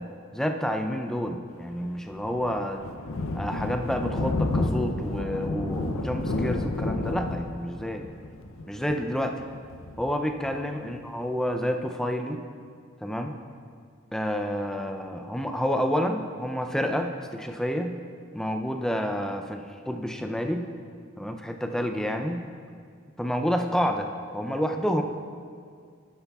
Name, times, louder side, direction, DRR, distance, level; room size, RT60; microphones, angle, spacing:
voice 1, 0.0-2.8 3.4-8.1 8.7-9.4 10.0-12.4 13.0-13.4 14.1-18.0 18.3-20.7 21.2-22.5 23.2-24.1 24.3-25.0, equal, 5° left, 5 dB, 0.4 m, -29 dB
Thunder, 1.8-10.9, left 2 dB, 85° left, 0.6 m, -31 dB
12.0 x 9.9 x 2.3 m, 2.2 s
head